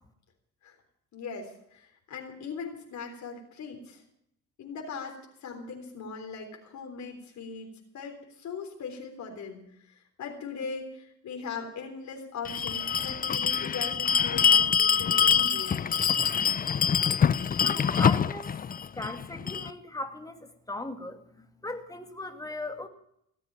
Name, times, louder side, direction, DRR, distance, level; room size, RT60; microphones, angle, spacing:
voice 1, 1.1-4.0 4.6-15.7, left 5 dB, 70° left, 2 dB, 3.7 m, -40 dB
Bell, 12.4-19.7, left 7 dB, 30° left, 0.5 m, -25 dB
voice 2, 17.5-18.5 18.9-22.9, left 2 dB, 10° left, 5 dB, 2.4 m, -38 dB
18.0 x 7.7 x 8.9 m, 0.73 s
cardioid pair, 90°, 30 cm